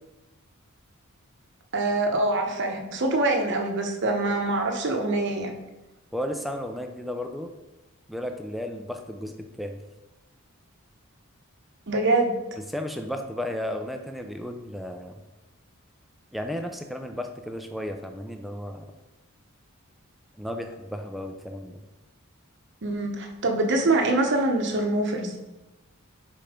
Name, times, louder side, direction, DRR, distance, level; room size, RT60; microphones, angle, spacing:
voice 1, 1.7-5.5 11.9-12.4 22.8-25.4, right 2 dB, 55° right, 3 dB, 0.9 m, -24 dB
voice 2, 6.1-7.5 8.1-9.8 12.7-15.2 16.3-18.9 20.4-21.8, left 1 dB, ahead, 5 dB, 0.4 m, -34 dB
5.3 x 4.4 x 5.0 m, 1.1 s
head